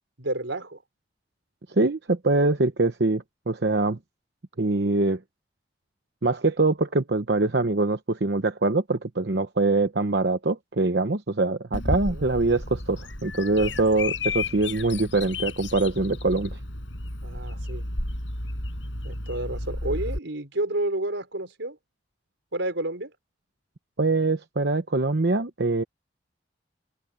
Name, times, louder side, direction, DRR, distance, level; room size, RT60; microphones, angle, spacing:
voice 1, 0.2-0.8 12.1-12.2 17.2-17.8 19.0-21.8 22.5-23.1, right 1 dB, 85° right, 4.2 m, -30 dB
voice 2, 1.7-4.0 4.6-5.2 6.2-16.6 24.0-25.8, right 2 dB, 60° right, 0.9 m, -24 dB
Bird vocalization bird call bird song, 11.7-20.2, left 2 dB, 85° left, 7.8 m, -32 dB
open air
head